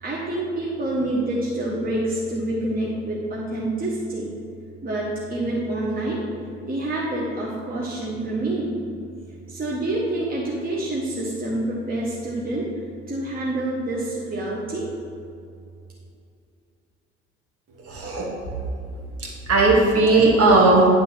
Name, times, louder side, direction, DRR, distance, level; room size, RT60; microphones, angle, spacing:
voice 1, 0.0-4.3 4.8-6.2 6.6-8.8 9.5-14.9, right 1 dB, 25° right, -5 dB, 1.3 m, -27 dB
voice 2, 17.9-18.3 19.2-20.9, right 2 dB, 45° right, -2 dB, 1.8 m, -17 dB
9.7 x 3.6 x 5.8 m, 2.4 s
figure-of-eight pair, 55°, 34 cm